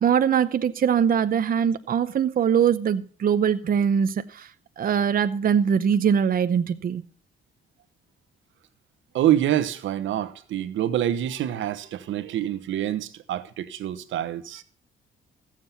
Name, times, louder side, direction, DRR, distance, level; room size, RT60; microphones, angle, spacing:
voice 1, 0.0-4.5 4.8-7.0, right 8 dB, 45° right, 0.8 m, -22 dB
voice 2, 9.1-14.6, right 12 dB, 80° right, 1.1 m, -26 dB
15.0 x 7.5 x 5.8 m
cardioid pair, 90°, 20 cm